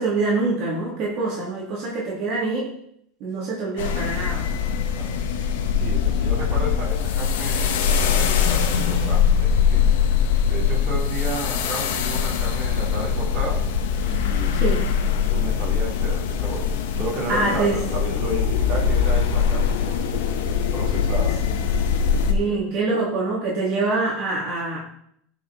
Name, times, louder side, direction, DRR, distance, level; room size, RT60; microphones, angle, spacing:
voice 1, 0.0-2.7 3.2-4.5 14.5-14.8 17.3-17.8 22.3-24.8, right 3 dB, 55° right, -4 dB, 3.1 m, -25 dB
sound 1, 3.8-22.3, left 7 dB, 90° left, 1.3 m, -22 dB
voice 2, 4.6-5.1 5.8-9.9 10.5-13.6 14.0-14.7 15.2-16.6 16.9-19.9 20.7-21.6 22.4-22.6, right 2 dB, 35° right, -3 dB, 3.4 m, -32 dB
13.0 x 6.2 x 4.4 m, 0.69 s
supercardioid pair, 135°, 0 cm